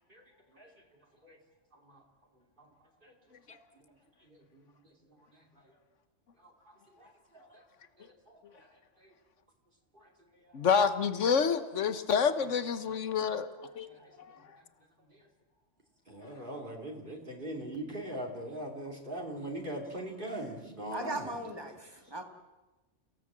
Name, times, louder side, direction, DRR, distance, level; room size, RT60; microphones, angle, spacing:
voice 1, 0.1-0.7 1.2-1.4 1.7-2.0 2.6-2.7 3.0-3.1 4.2-4.9 5.3-5.8 6.4-7.6 8.0-8.7 9.0-9.1 9.9-10.6 13.6-14.6 15.1-15.3 16.1-21.4 22.0-22.1, right 1 dB, 45° right, 3.3 m, -43 dB
voice 2, 10.5-13.5 13.7-13.9, left 6 dB, 80° left, 1.5 m, -27 dB
voice 3, 20.9-22.2, right 1 dB, 20° right, 2.4 m, -38 dB
29.5 x 17.5 x 7.6 m
omnidirectional pair, 1.2 m